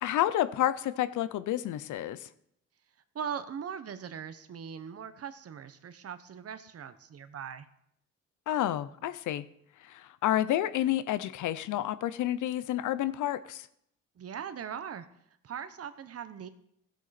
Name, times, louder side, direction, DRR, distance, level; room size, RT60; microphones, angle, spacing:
voice 1, 0.0-2.3 8.5-9.4 9.9-13.7, left 13 dB, 80° left, 14 dB, 0.7 m, -30 dB
voice 2, 3.1-7.7 14.2-15.1 15.4-16.5, right 7 dB, 50° right, 12 dB, 1.1 m, -40 dB
15.5 x 8.2 x 4.3 m, 0.73 s
cardioid pair, 90°, 30 cm